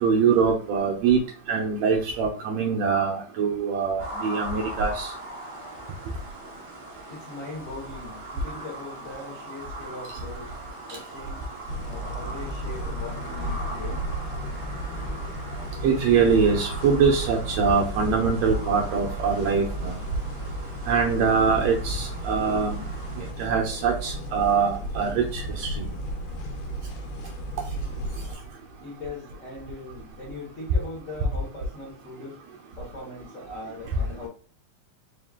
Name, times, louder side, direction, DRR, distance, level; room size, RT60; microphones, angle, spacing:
voice 1, 0.0-1.2 1.5-5.1 15.8-20.0 20.9-22.8 23.2-25.9, right 5 dB, 75° right, 1.6 m, -23 dB
sound 1, 4.0-23.3, equal, 55° right, 0.9 m, -40 dB
voice 2, 7.0-10.6 10.9-11.5 11.9-14.0 28.8-32.4 32.8-34.3, left 2 dB, 70° left, 0.7 m, -40 dB
sound 2, 11.7-28.3, right 1 dB, 90° left, 2.2 m, -34 dB
4.9 x 2.3 x 3.5 m
omnidirectional pair, 3.5 m